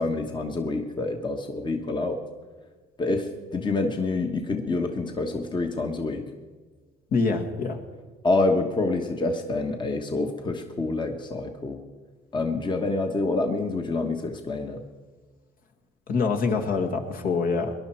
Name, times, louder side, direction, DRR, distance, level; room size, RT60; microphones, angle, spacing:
voice 1, 0.0-2.2 3.0-6.3 8.2-11.8 12.3-14.8, left 3 dB, 25° left, 4 dB, 1.3 m, -27 dB
voice 2, 7.1-7.8 16.1-17.7, left 4 dB, 60° left, 3 dB, 1.8 m, -25 dB
19.5 x 11.5 x 4.5 m, 1.4 s
cardioid pair, 110°, 17 cm